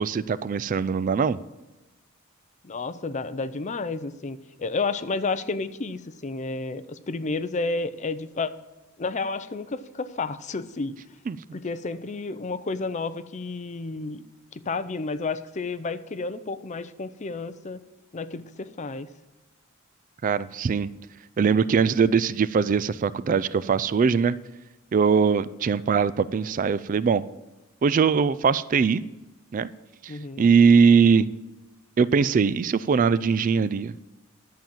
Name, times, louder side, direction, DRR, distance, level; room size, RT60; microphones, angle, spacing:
voice 1, 0.0-1.4 11.3-11.4 20.2-20.9 21.4-24.4 24.9-27.2 27.8-29.0 29.5-29.7 30.0-31.3 32.0-33.9, right 6 dB, 40° right, 18 dB, 0.3 m, -21 dB
voice 2, 2.6-8.5 9.0-11.0 11.5-14.2 14.5-17.8 18.1-19.1 30.1-30.5, left 3 dB, 35° left, 12 dB, 0.6 m, -31 dB
11.5 x 7.2 x 7.6 m, 1.1 s
head